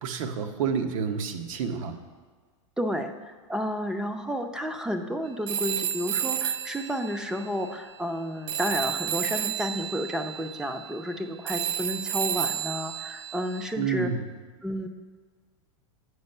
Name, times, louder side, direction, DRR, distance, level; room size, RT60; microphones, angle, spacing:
voice 1, 0.0-2.0 13.8-14.3, right 6 dB, 75° right, 8 dB, 0.8 m, -29 dB
voice 2, 2.8-14.1 14.6-14.9, equal, 5° right, 7 dB, 0.3 m, -31 dB
Telephone, 5.5-8.2 8.5-13.7, right 10 dB, 45° right, 0.6 m, -32 dB
7.9 x 5.1 x 5.4 m, 1.5 s
supercardioid pair, 150°, 17 cm